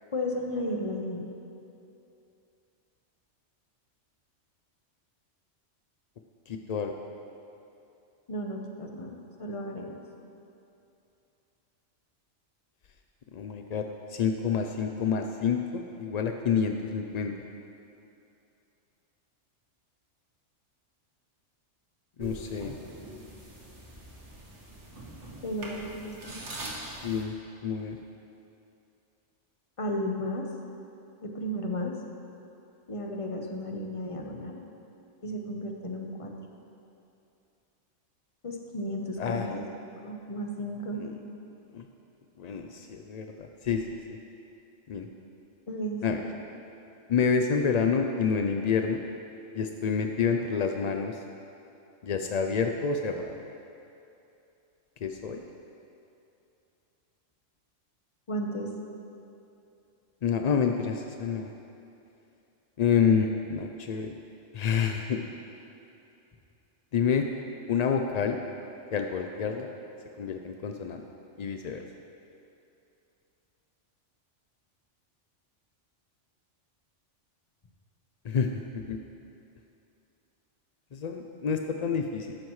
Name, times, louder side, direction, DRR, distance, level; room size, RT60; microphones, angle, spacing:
voice 1, 0.1-1.3 8.3-10.0 25.4-26.4 29.8-30.4 31.2-31.9 32.9-34.7 35.2-36.3 38.4-39.6 40.0-41.0 45.7-46.3 58.3-58.7, equal, 30° left, 1 dB, 1.0 m, -34 dB
voice 2, 6.5-6.9 13.3-17.3 22.2-22.7 26.9-27.3 27.6-28.0 39.2-39.5 41.0-41.1 41.7-41.9 42.4-43.8 44.9-45.1 46.0-46.2 47.1-49.0 49.5-51.2 52.0-53.4 55.0-55.4 60.2-61.5 62.8-64.1 64.5-65.2 66.9-67.3 67.7-68.4 68.9-69.7 70.2-71.0 71.4-71.8 78.2-79.0 80.9-82.4, left 6 dB, 60° left, 4 dB, 0.4 m, -28 dB
sound 1, 22.2-27.2, right 1 dB, 70° right, 1.9 m, -43 dB
14.0 x 11.5 x 3.2 m, 2.7 s
omnidirectional pair, 1.2 m